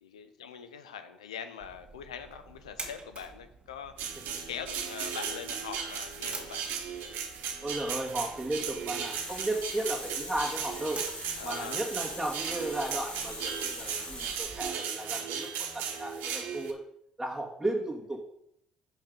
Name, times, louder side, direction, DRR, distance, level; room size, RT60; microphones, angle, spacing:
voice 1, 0.0-4.2 4.5-6.6 11.4-11.9, left 7 dB, 85° left, 9 dB, 0.5 m, -42 dB
sound 1, 1.6-14.7, right 3 dB, 35° right, 1.9 m, -49 dB
sound 2, 4.0-16.7, right 7 dB, 70° right, 0.9 m, -36 dB
voice 2, 7.6-11.0 11.4-15.5 15.7-16.8 17.2-18.2, right 1 dB, 5° right, -6 dB, 1.7 m, -34 dB
Water tap faucet, 8.9-14.3, left 2 dB, 40° left, 2.7 m, -43 dB
5.3 x 5.2 x 5.3 m, 0.74 s
hypercardioid pair, 50°, 3 cm